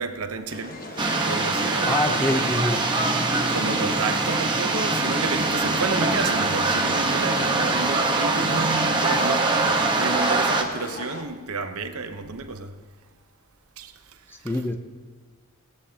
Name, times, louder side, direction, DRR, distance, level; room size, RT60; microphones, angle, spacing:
voice 1, 0.0-2.5 3.5-12.7 13.8-13.9, right 4 dB, 75° right, 0.9 m, -31 dB
sound 1, 0.5-11.2, left 2 dB, 40° left, 1.3 m, -39 dB
sound 2, 1.0-10.6, right 3 dB, 20° right, 1.0 m, -23 dB
voice 2, 1.8-2.8 14.3-14.7, left 1 dB, 10° left, 0.7 m, -25 dB
18.0 x 14.0 x 2.8 m
head